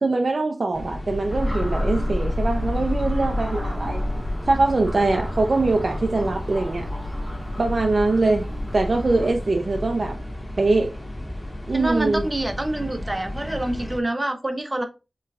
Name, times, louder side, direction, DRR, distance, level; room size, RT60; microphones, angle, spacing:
voice 1, 0.0-4.0 4.5-6.9 7.6-8.5 8.7-10.2 10.6-10.9 11.7-12.3, right 3 dB, 65° right, 0.4 m, -22 dB
sound 1, 0.7-14.0, left 1 dB, 30° left, 1.6 m, -34 dB
sound 2, 1.3-9.3, left 1 dB, 15° left, 1.3 m, -29 dB
voice 2, 11.7-14.9, right 1 dB, 25° right, 0.7 m, -26 dB
4.6 x 3.1 x 2.3 m
wide cardioid pair, 60°, 0 cm